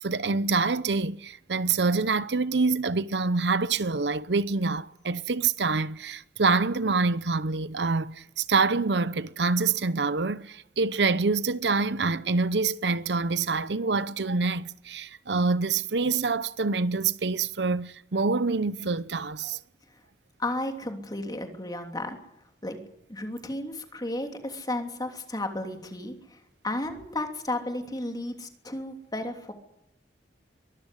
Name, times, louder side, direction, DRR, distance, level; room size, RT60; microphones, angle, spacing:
voice 1, 0.0-19.6, right 4 dB, 75° right, 0.8 m, -26 dB
voice 2, 20.4-22.2 22.6-22.8 23.1-29.5, left 1 dB, 25° left, 3.1 m, -33 dB
23.0 x 14.0 x 10.0 m
head